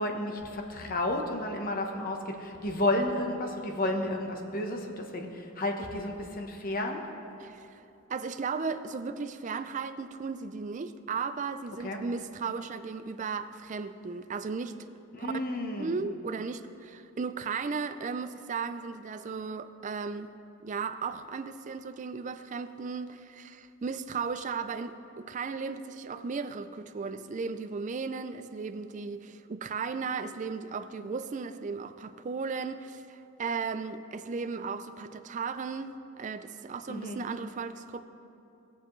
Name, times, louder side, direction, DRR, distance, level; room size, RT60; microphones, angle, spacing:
voice 1, 0.0-7.1 11.8-12.0 15.1-16.0 36.9-37.2, left 1 dB, 40° left, 1.0 m, -32 dB
voice 2, 7.4-7.8 8.1-14.8 15.2-15.3 15.8-20.3 20.6-38.0, right 5 dB, 35° right, 0.4 m, -35 dB
19.5 x 7.2 x 3.1 m
head